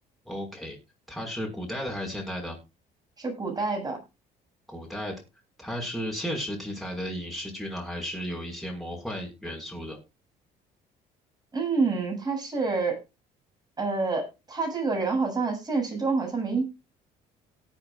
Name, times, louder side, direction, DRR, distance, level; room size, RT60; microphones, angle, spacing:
voice 1, 0.3-0.8 1.1-2.6 4.7-5.1 5.6-10.0, equal, ahead, -1 dB, 5.8 m, -34 dB
voice 2, 3.2-4.0 11.5-13.0 13.8-16.6, right 4 dB, 25° right, 2 dB, 7.7 m, -27 dB
18.0 x 8.4 x 2.6 m, 0.27 s
cardioid pair, 110°, 17 cm